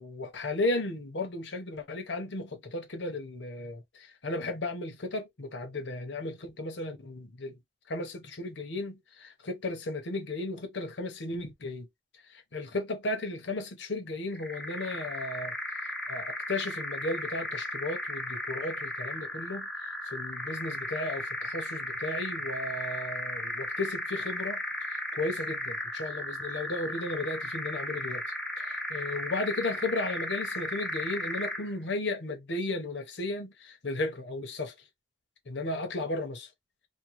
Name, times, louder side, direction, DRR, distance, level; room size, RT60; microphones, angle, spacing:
voice 1, 0.0-7.6 7.9-11.9 12.3-15.5 16.1-19.7 20.1-28.2 28.6-34.7 35.5-36.5, left 2 dB, 80° left, 0.8 m, -35 dB
sound 1, 14.3-31.7, left 1 dB, 5° left, 0.5 m, -35 dB
3.7 x 2.2 x 2.9 m
head